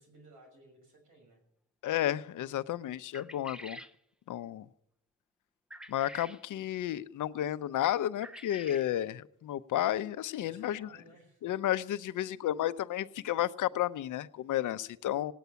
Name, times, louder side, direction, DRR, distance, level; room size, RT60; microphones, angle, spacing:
voice 1, 0.0-1.4 10.4-11.4, right 1 dB, 85° right, 6.3 m, -58 dB
voice 2, 1.8-3.8 4.3-4.7 5.9-10.9 11.4-15.3, left 12 dB, 80° left, 0.7 m, -32 dB
sound 1, 3.1-3.9 5.7-6.4 8.2-8.9, equal, 5° right, 0.6 m, -47 dB
18.5 x 9.4 x 6.9 m
cardioid pair, 130°, 30 cm